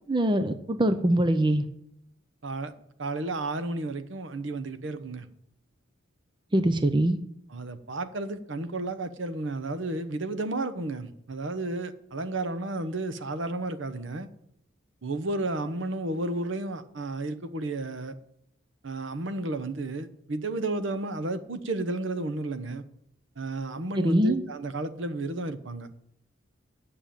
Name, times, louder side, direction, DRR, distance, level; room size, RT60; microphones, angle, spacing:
voice 1, 0.1-1.7 6.5-7.2 23.9-24.4, right 1 dB, 25° right, 10 dB, 0.6 m, -23 dB
voice 2, 3.0-5.3 7.5-14.3 15.0-18.1 18.8-22.8 23.4-25.9, right 2 dB, 65° right, 11 dB, 0.9 m, -32 dB
9.3 x 6.9 x 8.9 m, 0.74 s
head